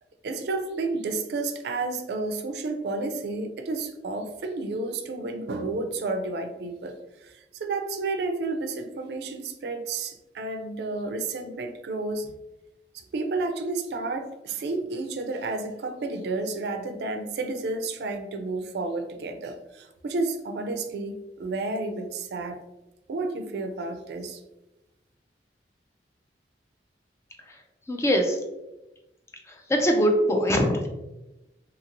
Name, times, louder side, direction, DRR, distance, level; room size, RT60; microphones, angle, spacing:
voice 1, 0.2-6.9 7.2-12.3 12.9-22.6 23.1-24.4, right 3 dB, 65° right, 6 dB, 0.3 m, -31 dB
voice 2, 27.9-28.4 29.5-30.9, equal, 15° left, 3 dB, 0.3 m, -23 dB
2.8 x 2.5 x 2.8 m, 0.98 s
head